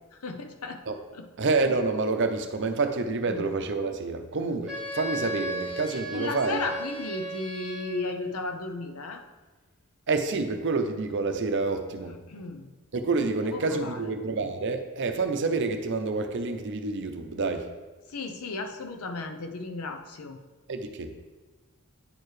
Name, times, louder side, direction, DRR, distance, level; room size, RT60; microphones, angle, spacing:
voice 1, 0.1-0.8 1.1-1.3 3.3-3.5 5.9-9.2 12.0-12.7 13.4-14.1 18.1-20.4, left 3 dB, 85° left, 6 dB, 0.7 m, -35 dB
voice 2, 1.4-6.6 10.1-12.1 12.9-17.7 20.7-21.1, right 3 dB, 55° right, 6 dB, 0.6 m, -28 dB
Wind instrument woodwind instrument, 4.7-8.2, right 1 dB, 5° right, 1.6 m, -35 dB
9.4 x 4.6 x 3.2 m, 1.2 s
head